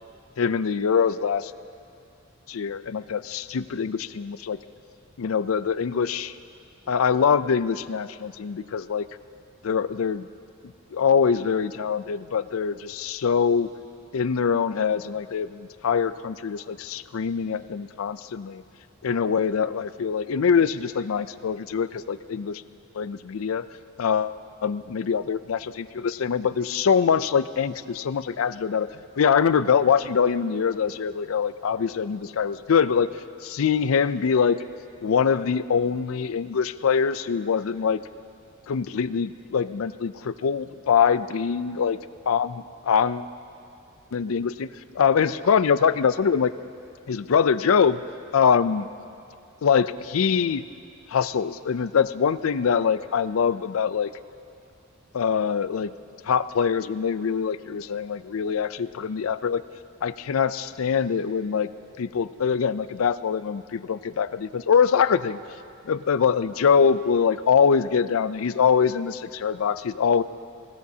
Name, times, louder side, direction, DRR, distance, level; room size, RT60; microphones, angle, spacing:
voice 1, 0.4-1.5 2.5-4.6 5.2-6.3 6.9-9.1 9.6-10.3 10.9-13.7 14.1-18.6 19.0-22.6 22.9-23.7 24.0-28.9 29.2-33.1 33.4-34.6 35.0-38.0 38.7-42.0 42.3-43.3 44.1-44.7 45.0-46.5 47.1-48.0 48.3-48.9 49.6-50.6 51.1-54.1 55.1-55.9 56.3-59.6 60.0-61.7 62.0-65.4 65.9-70.2, left 6 dB, 80° left, 14 dB, 0.4 m, -23 dB
24.5 x 16.5 x 2.8 m, 2.5 s
head